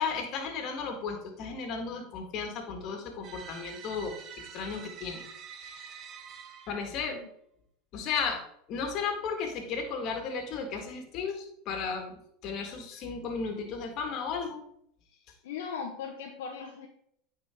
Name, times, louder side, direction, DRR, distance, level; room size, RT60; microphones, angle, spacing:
voice 1, 0.0-5.2 5.5-6.0 6.7-7.2 7.9-14.7, left 5 dB, 50° left, 4 dB, 1.9 m, -35 dB
sound 1, 3.2-7.0, right 7 dB, 45° right, 0.9 m, -46 dB
voice 2, 15.4-16.9, left 6 dB, 75° left, 0 dB, 1.1 m, -38 dB
9.3 x 4.5 x 3.8 m, 0.70 s
hypercardioid pair, 100°, 0 cm